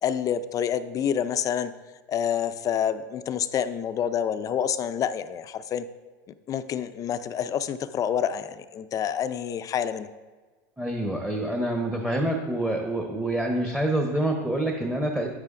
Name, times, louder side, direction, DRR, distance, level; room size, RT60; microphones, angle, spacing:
voice 1, 0.0-1.7 2.1-5.9 6.5-10.1, left 8 dB, 35° left, 12 dB, 0.4 m, -28 dB
voice 2, 10.8-15.3, right 1 dB, 5° right, 2 dB, 1.0 m, -26 dB
9.5 x 9.2 x 2.5 m, 1.4 s
hypercardioid pair, 105°, 10 cm